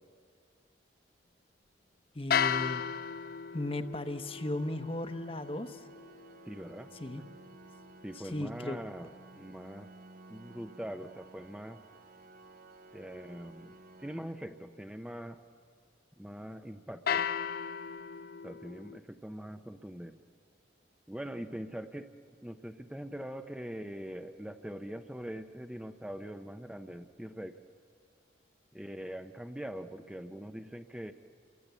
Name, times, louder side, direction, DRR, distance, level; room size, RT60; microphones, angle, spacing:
voice 1, 2.1-2.8 3.5-5.8 7.0-7.2 8.2-8.8, left 1 dB, 30° left, 8 dB, 1.0 m, -36 dB
sound 1, 2.3-8.4 17.1-19.0, left 7 dB, 55° left, 0.6 m, -36 dB
Organ, 4.1-15.1, right 2 dB, 50° right, 1.0 m, -55 dB
voice 2, 6.5-7.3 8.0-9.1 9.4-9.9 10.3-11.8 12.9-15.4 16.2-17.3 18.4-20.2 21.1-22.2 22.4-27.6 28.7-31.1, equal, 5° right, 6 dB, 0.6 m, -43 dB
28.5 x 23.0 x 8.2 m, 2.1 s
head